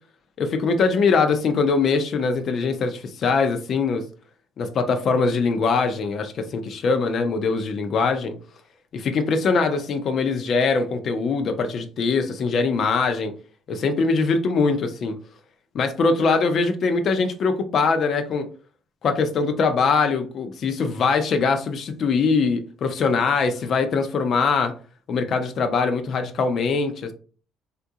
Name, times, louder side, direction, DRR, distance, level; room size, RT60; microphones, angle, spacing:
voice 1, 0.4-4.0 4.6-8.3 8.9-13.3 13.7-15.2 15.7-18.4 19.0-24.7 25.1-27.1, left 4 dB, 50° left, 6 dB, 0.5 m, -22 dB
3.6 x 2.4 x 2.7 m, 0.39 s
cardioid pair, 120°, 0 cm